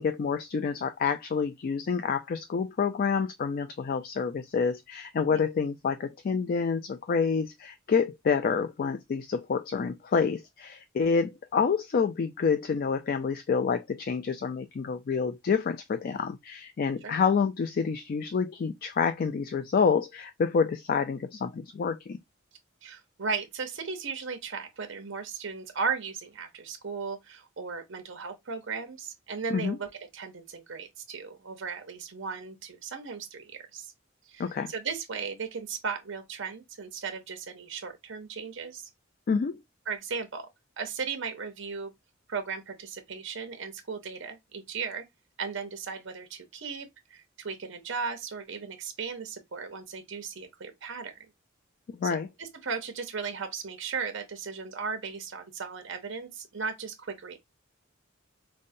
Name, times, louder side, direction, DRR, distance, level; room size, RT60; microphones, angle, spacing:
voice 1, 0.0-22.2 29.5-29.8 34.4-34.7 39.3-39.6 52.0-52.3, left 5 dB, 45° left, 0.3 m, -28 dB
voice 2, 22.8-33.9 34.3-38.9 39.9-40.5 40.8-41.9 42.3-45.0 45.4-51.2 52.0-57.4, right 5 dB, 65° right, 0.8 m, -36 dB
5.2 x 2.1 x 2.6 m
head